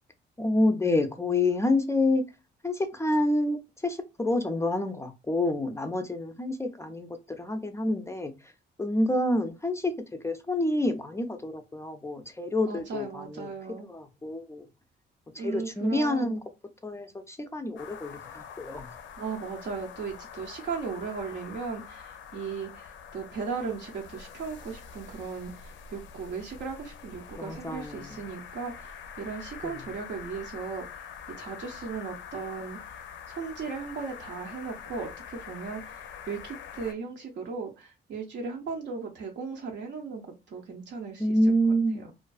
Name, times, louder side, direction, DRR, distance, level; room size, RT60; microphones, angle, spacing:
voice 1, 0.4-2.2 2.6-8.3 8.8-13.5 13.9-14.7 15.3-16.4 16.8-18.9 27.4-28.2 29.6-29.7 41.2-42.1, left 1 dB, 15° left, 0.4 m, -28 dB
voice 2, 12.7-13.9 15.4-16.4 19.2-31.1 31.4-41.4, right 5 dB, 60° right, 0.6 m, -37 dB
sound 1, 17.8-36.9, left 7 dB, 70° left, 0.4 m, -45 dB
2.4 x 2.3 x 2.3 m
cardioid pair, 90°, 20 cm